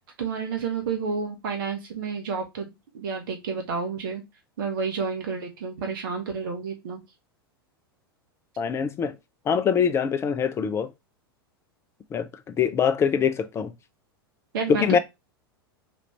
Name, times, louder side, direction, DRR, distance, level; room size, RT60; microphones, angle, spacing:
voice 1, 0.2-4.2 4.6-7.0 14.5-14.8, right 5 dB, 60° right, 1.2 m, -30 dB
voice 2, 8.6-9.1 9.5-10.9 12.1-13.7 14.7-15.0, left 7 dB, 20° left, 0.5 m, -23 dB
4.2 x 2.5 x 3.2 m
figure-of-eight pair, 90°, 13 cm